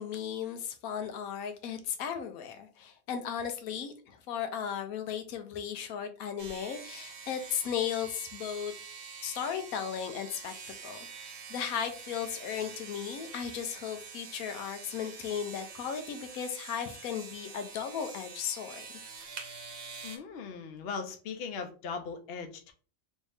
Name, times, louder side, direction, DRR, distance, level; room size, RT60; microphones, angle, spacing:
voice 1, 0.0-8.7 9.2-10.5 10.8-18.9, left 8 dB, 85° left, 7 dB, 1.1 m, -36 dB
sound 1, 6.4-20.2, right 5 dB, 60° right, 0.9 m, -46 dB
voice 2, 20.0-22.7, left 5 dB, 55° left, 6 dB, 0.7 m, -39 dB
3.1 x 2.7 x 3.3 m, 0.39 s
omnidirectional pair, 1.5 m